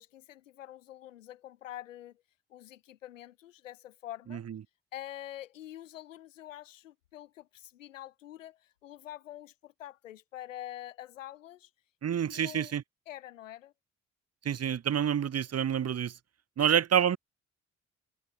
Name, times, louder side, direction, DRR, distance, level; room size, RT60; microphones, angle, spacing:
voice 1, 0.0-2.2 2.5-4.4 4.9-11.7 12.3-12.7 13.1-13.7 16.6-16.7, left 13 dB, 85° left, 1.8 m, -46 dB
voice 2, 12.0-12.8 14.4-16.1 16.6-17.2, right 9 dB, 40° right, 1.3 m, -27 dB
figure-of-eight pair, 45°, 38 cm